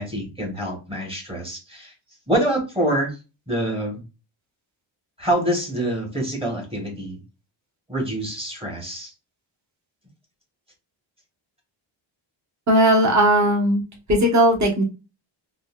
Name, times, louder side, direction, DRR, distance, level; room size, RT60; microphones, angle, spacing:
voice 1, 0.0-1.9 2.3-3.2 3.5-4.0 5.2-7.2 7.9-9.1, right 1 dB, 10° right, 1 dB, 1.1 m, -26 dB
voice 2, 12.7-13.8 14.1-14.8, right 1 dB, 35° right, 0 dB, 1.2 m, -17 dB
3.8 x 2.5 x 2.4 m, 0.29 s
wide cardioid pair, 145°, 48 cm